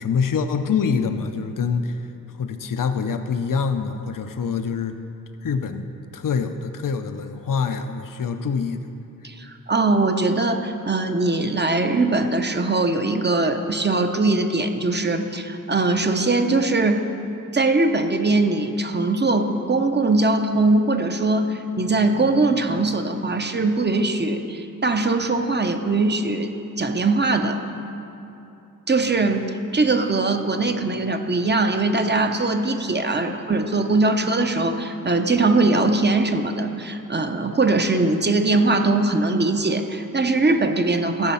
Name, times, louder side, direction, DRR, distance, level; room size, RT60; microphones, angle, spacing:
voice 1, 0.0-2.1 2.4-5.0 5.4-8.8 33.3-33.4, left 5 dB, 70° left, 8 dB, 0.6 m, -25 dB
voice 2, 9.2-17.1 17.5-27.6 28.9-41.3, right 2 dB, 30° right, 6 dB, 0.7 m, -21 dB
14.5 x 7.3 x 5.6 m, 2.8 s
wide cardioid pair, 95°, 33 cm